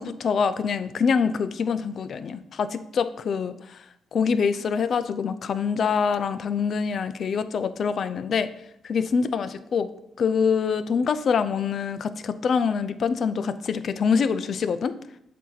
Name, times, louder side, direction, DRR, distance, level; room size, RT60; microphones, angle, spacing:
voice 1, 0.0-3.8 4.1-8.5 8.8-9.9 10.2-14.9, left 6 dB, 55° left, 12 dB, 0.4 m, -25 dB
7.4 x 2.8 x 5.7 m, 0.77 s
cardioid pair, 90°, 0 cm